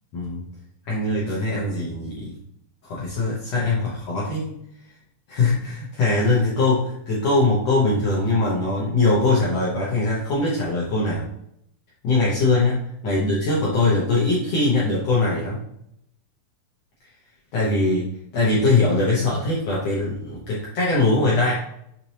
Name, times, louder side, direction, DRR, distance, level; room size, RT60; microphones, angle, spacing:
voice 1, 0.1-0.4 0.8-2.3 2.8-4.5 5.3-11.3 12.0-15.6 17.5-21.5, left 2 dB, 80° left, -6 dB, 1.5 m, -22 dB
6.7 x 2.9 x 2.8 m, 0.74 s
omnidirectional pair, 4.3 m